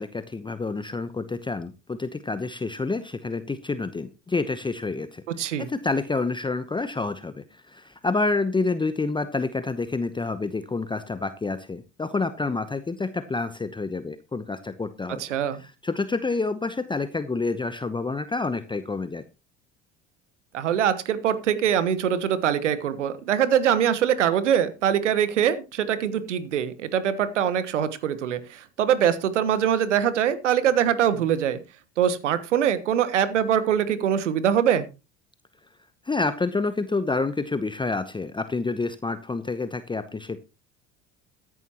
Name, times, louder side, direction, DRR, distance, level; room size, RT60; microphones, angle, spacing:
voice 1, 0.0-15.2 15.6-19.2 36.0-40.4, left 3 dB, 15° left, 12 dB, 0.9 m, -28 dB
voice 2, 15.2-15.6 20.5-31.6 32.0-34.8, right 9 dB, 80° right, 14 dB, 1.3 m, -23 dB
14.0 x 11.0 x 3.0 m, 0.28 s
hypercardioid pair, 65°, 36 cm